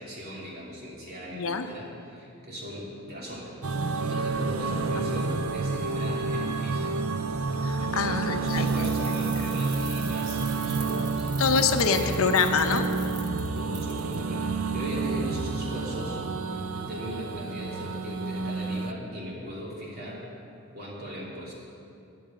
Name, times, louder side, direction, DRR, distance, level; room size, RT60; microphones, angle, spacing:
voice 1, 0.0-3.5 4.0-6.9 7.2-7.4 7.8-11.3 11.8-12.1 13.6-16.2 16.7-20.2 20.7-21.5, equal, 45° right, -5 dB, 2.9 m, -38 dB
voice 2, 1.3-1.7 4.9-5.1 7.6-9.4 11.4-12.9, left 5 dB, 75° left, 7 dB, 0.8 m, -26 dB
sound 1, 3.6-18.9, right 4 dB, 85° right, 0.6 m, -29 dB
sound 2, 8.4-14.1, right 3 dB, 20° right, 1.1 m, -42 dB
10.0 x 8.6 x 8.8 m, 2.6 s
head